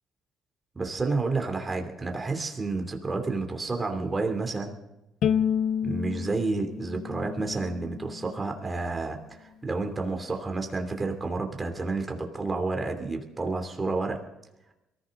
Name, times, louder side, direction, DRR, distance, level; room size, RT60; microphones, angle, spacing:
voice 1, 0.7-4.7 5.8-14.2, right 3 dB, 20° right, 4 dB, 2.9 m, -30 dB
Bowed string instrument, 5.2-8.4, left 8 dB, 65° left, 1.0 m, -30 dB
23.0 x 15.0 x 3.8 m, 0.93 s
cardioid pair, 100°, 0 cm